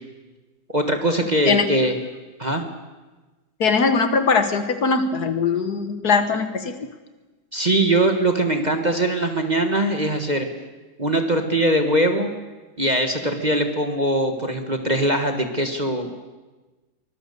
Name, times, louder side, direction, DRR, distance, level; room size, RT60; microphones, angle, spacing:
voice 1, 0.7-1.9 2.4-2.6 7.5-10.5 11.0-12.3 12.8-16.1, right 1 dB, 25° right, 6 dB, 1.5 m, -21 dB
voice 2, 3.6-6.8, left 4 dB, 55° left, 9 dB, 1.7 m, -20 dB
24.0 x 20.5 x 6.9 m, 1.2 s
omnidirectional pair, 2.0 m